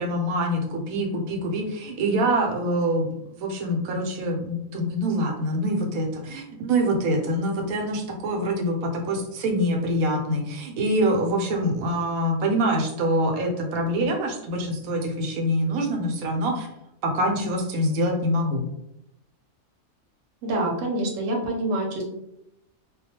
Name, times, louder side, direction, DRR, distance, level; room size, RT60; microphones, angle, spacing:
voice 1, 0.0-16.7 17.0-18.7, right 1 dB, 85° right, 2 dB, 1.0 m, -25 dB
voice 2, 20.4-22.1, right 1 dB, 60° right, -1 dB, 0.9 m, -26 dB
2.3 x 2.2 x 2.7 m, 0.82 s
omnidirectional pair, 1.4 m